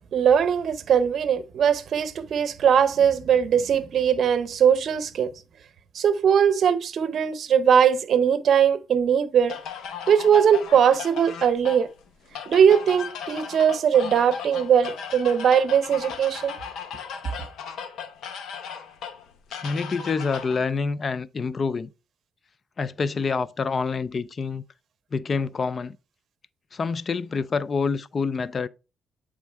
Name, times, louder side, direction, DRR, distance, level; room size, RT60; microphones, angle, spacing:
voice 1, 0.1-5.3 5.9-9.6 10.1-11.9 12.5-16.5, right 8 dB, 60° right, 0.7 m, -20 dB
sound 1, 9.5-20.6, left 7 dB, 75° left, 0.9 m, -37 dB
voice 2, 19.6-21.9 22.8-24.6 25.1-26.0 26.7-28.7, left 4 dB, 40° left, 0.4 m, -27 dB
8.2 x 3.7 x 3.3 m
cardioid pair, 90°, 0 cm